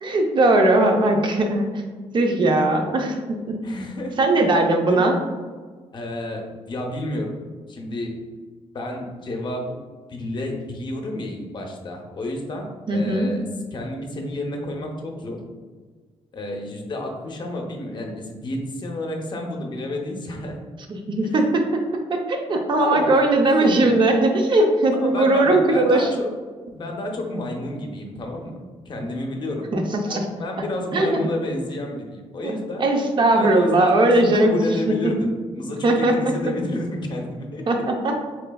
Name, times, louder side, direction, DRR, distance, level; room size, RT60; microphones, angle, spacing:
voice 1, 0.0-1.7 2.1-3.2 3.5-3.6 4.2-5.1 12.9-13.3 20.9-21.6 22.3-26.1 29.7-30.3 30.9-31.2 32.4-32.5 32.8-34.6 34.9-35.1 35.8-36.3 37.7-38.2, right 2 dB, 45° right, 3 dB, 0.6 m, -19 dB
voice 2, 3.6-4.2 4.9-5.1 5.9-7.3 7.7-8.2 8.7-9.8 10.1-13.4 13.7-15.4 16.3-20.6 21.2-21.5 22.8-23.2 23.6-23.9 24.9-26.3 26.7-29.7 30.0-32.9 33.3-37.6, left 1 dB, 45° left, 1 dB, 0.7 m, -30 dB
4.4 x 3.2 x 2.2 m, 1.5 s
cardioid pair, 125°, 11 cm